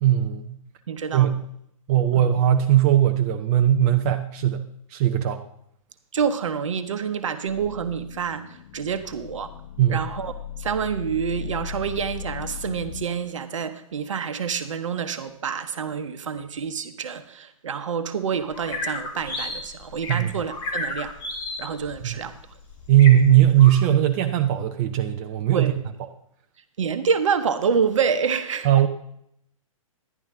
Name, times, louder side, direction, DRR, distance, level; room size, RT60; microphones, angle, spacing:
voice 1, 0.0-0.6 1.1-1.4 1.9-4.6 4.9-5.4 9.8-10.0 20.1-20.3 22.0-22.2 22.9-25.7 28.6-28.9, right 11 dB, 30° right, 5 dB, 0.5 m, -19 dB
voice 2, 0.9-1.4 2.1-2.3 6.1-9.5 9.9-10.3 10.6-21.1 21.6-22.4 25.5-25.8 26.8-28.7, right 6 dB, 60° right, 10 dB, 1.0 m, -27 dB
sound 1, 7.5-13.0, left 10 dB, 40° left, 0.7 m, -38 dB
sound 2, 18.5-23.8, left 2 dB, 25° left, 1.9 m, -33 dB
11.0 x 10.5 x 3.7 m, 0.72 s
figure-of-eight pair, 125°, 18 cm